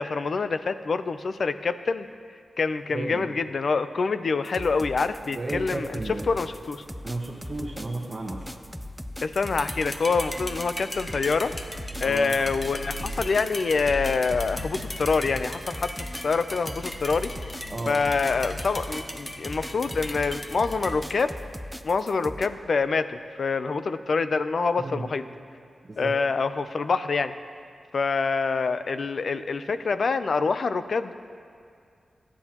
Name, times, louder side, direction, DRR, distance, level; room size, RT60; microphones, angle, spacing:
voice 1, 0.0-2.1 2.6-6.8 9.2-11.5 12.0-17.3 17.9-21.3 21.8-25.2 26.0-27.3 27.9-31.1, left 4 dB, 55° left, 11 dB, 0.5 m, -26 dB
voice 2, 2.9-3.2 5.3-6.2 7.0-8.4 12.0-12.3 17.7-18.0 24.8-25.0 25.9-26.1, right 2 dB, 30° right, -3 dB, 1.1 m, -32 dB
sound 1, 4.4-22.5, equal, ahead, 0.5 m, -39 dB
sound 2, 5.1-21.2, left 1 dB, 20° left, 1.0 m, -38 dB
28.5 x 10.0 x 3.0 m, 2.3 s
wide cardioid pair, 130°, 0 cm